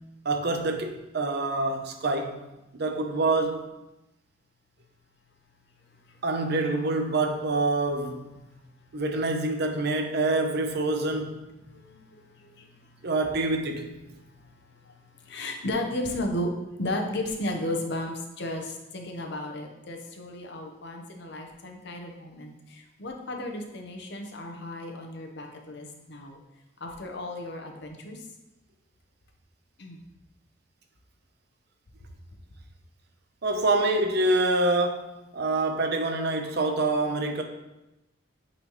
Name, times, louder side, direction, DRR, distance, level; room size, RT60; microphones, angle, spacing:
voice 1, 0.2-2.4 2.7-3.7 6.2-8.3 8.9-11.4 13.0-13.9 33.4-37.4, right 2 dB, 60° right, 0.7 m, -26 dB
voice 2, 11.7-13.1 14.2-16.5 16.8-26.4 26.8-28.2 29.8-30.0, left 1 dB, 65° left, 0.9 m, -35 dB
8.4 x 4.2 x 3.1 m
head